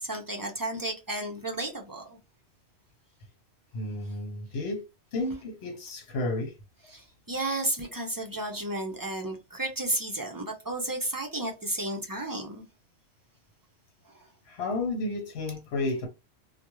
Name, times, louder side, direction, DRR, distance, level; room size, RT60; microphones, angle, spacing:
voice 1, 0.0-2.2 6.9-12.6, right 1 dB, 35° right, 0.3 m, -33 dB
voice 2, 3.7-4.8 5.1-6.5 14.5-16.1, left 2 dB, 80° left, 0.9 m, -32 dB
2.3 x 2.1 x 2.9 m
omnidirectional pair, 1.1 m